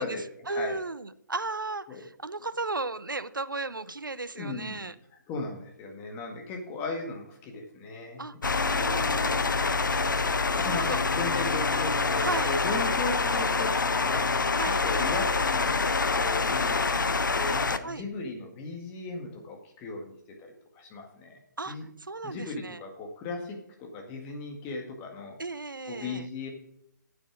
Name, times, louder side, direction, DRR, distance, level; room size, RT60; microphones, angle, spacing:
voice 1, 0.0-4.9 8.2-8.4 8.6-9.5 10.5-11.0 12.2-12.5 14.6-14.8 17.8-18.0 21.6-22.8 25.4-26.3, right 3 dB, 90° right, 14 dB, 0.6 m, -35 dB
voice 2, 4.3-4.9 5.3-8.3 10.5-14.3 14.6-15.8 16.1-21.4 21.7-21.8 22.2-25.4 25.9-26.5, left 3 dB, 20° left, 1 dB, 1.8 m, -37 dB
sound 1, 8.4-17.8, left 4 dB, 75° left, 0.8 m, -26 dB
9.1 x 7.9 x 6.1 m, 0.72 s
figure-of-eight pair, 145°, 11 cm